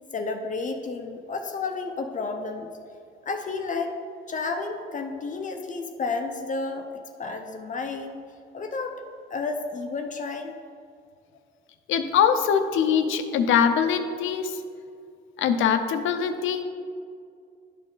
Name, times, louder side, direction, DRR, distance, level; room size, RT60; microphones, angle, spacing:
voice 1, 0.1-2.7 3.3-4.0 4.3-6.9 7.2-8.2 8.5-9.0 9.3-10.6, left 4 dB, 40° left, 5 dB, 0.6 m, -31 dB
voice 2, 11.9-14.6 15.4-16.6, left 7 dB, 80° left, 8 dB, 0.6 m, -23 dB
11.5 x 4.1 x 3.8 m, 2.3 s
cardioid pair, 90°, 20 cm